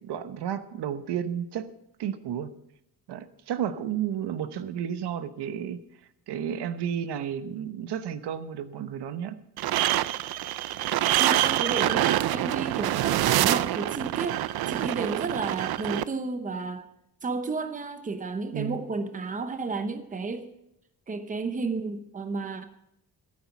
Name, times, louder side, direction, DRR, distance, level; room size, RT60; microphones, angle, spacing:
voice 1, 0.0-1.7 2.0-2.5 3.1-5.8 6.3-9.4 18.5-18.8, right 9 dB, 80° right, 11 dB, 1.0 m, -32 dB
sound 1, 9.6-16.0, right 14 dB, 65° right, 0.5 m, -26 dB
voice 2, 11.2-16.9 17.2-20.5 21.1-22.6, right 4 dB, 20° right, 8 dB, 0.9 m, -32 dB
14.5 x 8.8 x 5.9 m, 0.78 s
wide cardioid pair, 170°, 40 cm